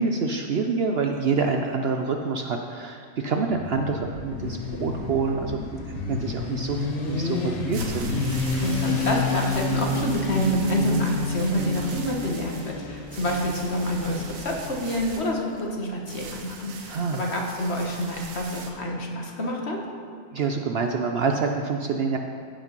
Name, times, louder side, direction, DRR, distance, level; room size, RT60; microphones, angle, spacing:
voice 1, 0.0-8.2 16.9-17.2 20.3-22.2, right 4 dB, 60° right, 4 dB, 0.7 m, -27 dB
Motorcycle, 3.4-15.0, left 3 dB, 75° left, 1.6 m, -30 dB
sound 1, 7.7-18.7, right 4 dB, 75° right, 1.3 m, -41 dB
voice 2, 8.6-19.8, equal, 50° left, 0 dB, 1.6 m, -27 dB
15.0 x 5.1 x 5.4 m, 2.3 s
omnidirectional pair, 1.4 m